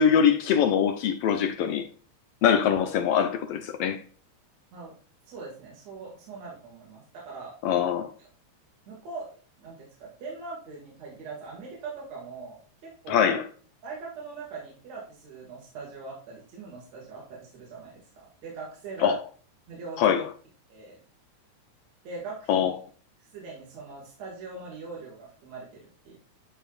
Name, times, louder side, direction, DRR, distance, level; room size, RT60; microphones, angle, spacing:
voice 1, 0.0-1.9 2.4-4.0 7.6-8.1 13.1-13.4 19.0-19.2 20.0-20.3 22.5-22.7, left 8 dB, 75° left, 1.5 m, -23 dB
voice 2, 5.3-7.6 8.9-9.3 9.6-13.3 13.8-19.2 19.7-20.2 20.7-21.0 22.0-22.7 23.3-26.2, right 4 dB, 65° right, 3.3 m, -41 dB
11.0 x 4.6 x 2.4 m
omnidirectional pair, 3.4 m